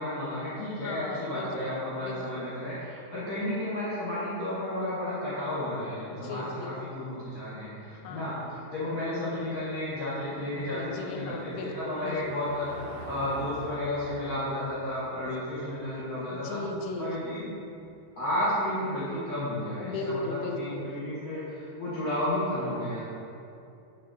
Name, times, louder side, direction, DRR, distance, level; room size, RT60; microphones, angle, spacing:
voice 1, 0.0-12.7 13.0-16.6 17.0-17.4 18.2-23.0, left 1 dB, 60° left, -12 dB, 0.9 m, -32 dB
voice 2, 0.8-2.5 6.1-6.8 7.9-8.5 10.5-12.2 16.3-17.1 19.8-20.9, left 3 dB, 80° left, 3 dB, 2.0 m, -37 dB
Car passing by / Engine, 8.0-18.6, right 1 dB, 80° right, 2.6 m, -47 dB
7.5 x 4.0 x 3.8 m, 2.7 s
omnidirectional pair, 3.7 m